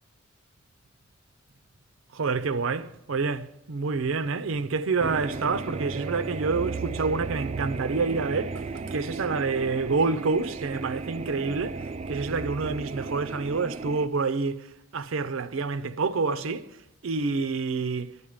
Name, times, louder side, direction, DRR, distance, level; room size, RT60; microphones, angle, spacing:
voice 1, 2.1-16.7 17.0-18.2, right 4 dB, 85° right, 0.5 m, -28 dB
sound 1, 5.0-14.1, right 4 dB, 30° right, 0.3 m, -35 dB
11.0 x 9.9 x 5.0 m
head